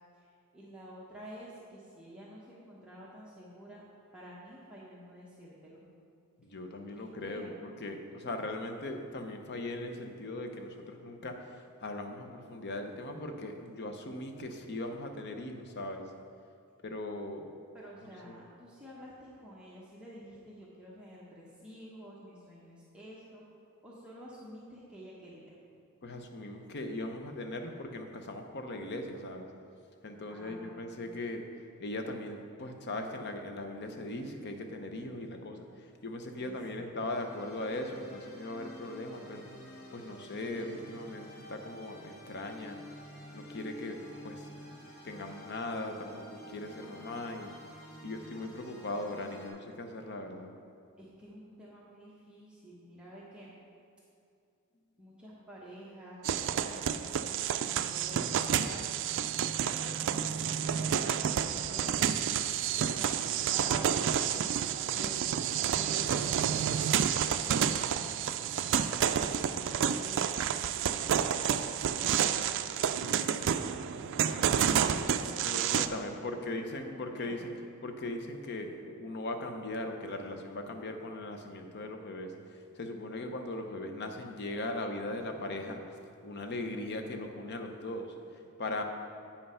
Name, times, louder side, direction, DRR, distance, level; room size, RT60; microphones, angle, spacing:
voice 1, 0.2-3.8 4.1-5.8 6.9-7.5 17.7-23.4 23.8-25.6 30.3-31.1 36.4-37.0 51.0-53.5 55.0-59.3 59.5-64.4 64.9-68.4 68.9-72.6 73.5-73.7 74.1-76.4 76.8-77.6, equal, 5° right, -7 dB, 1.0 m, -50 dB
voice 2, 6.4-16.1 16.8-17.4 18.3-18.4 26.0-29.5 30.0-31.4 31.8-39.5 39.9-42.8 43.3-44.5 45.0-47.5 48.0-50.5 75.4-77.5 77.8-86.0 86.2-88.8, left 2 dB, 50° left, 5 dB, 0.7 m, -39 dB
sound 1, 36.9-49.5, equal, 85° left, 2.0 m, -50 dB
sound 2, 56.2-75.9, right 8 dB, 60° right, 0.3 m, -30 dB
8.6 x 5.5 x 5.5 m, 2.5 s
head